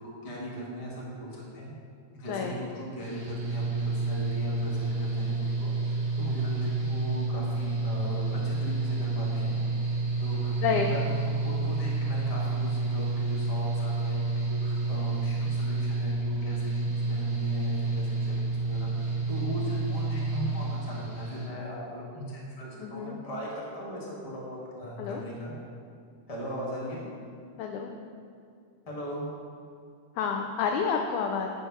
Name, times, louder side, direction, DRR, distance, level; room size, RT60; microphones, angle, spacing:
voice 1, 0.0-1.7 2.1-9.5 10.2-18.3 18.6-25.5 26.3-27.0 28.9-29.3, equal, 25° left, -4 dB, 0.7 m, -38 dB
voice 2, 2.3-2.6 10.6-10.9 22.8-23.2 25.0-25.2 27.6-27.9 30.2-31.5, left 6 dB, 80° left, 2 dB, 2.0 m, -29 dB
Mechanical fan, 3.0-21.5, right 3 dB, 35° right, 2.7 m, -29 dB
10.0 x 4.4 x 5.9 m, 2.3 s
omnidirectional pair, 3.4 m